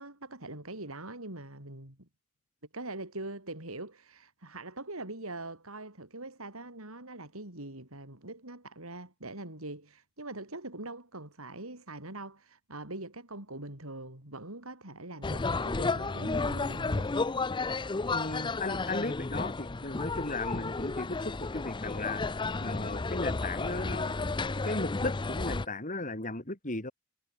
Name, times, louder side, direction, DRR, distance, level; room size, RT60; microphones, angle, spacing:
voice 1, 0.0-2.1 2.7-17.1, right 2 dB, 90° right, 6.7 m, -43 dB
sound 1, 15.2-25.7, left 3 dB, 20° left, 0.6 m, -32 dB
voice 2, 18.1-22.3 22.6-24.1 24.6-26.9, left 2 dB, 40° left, 5.7 m, -36 dB
head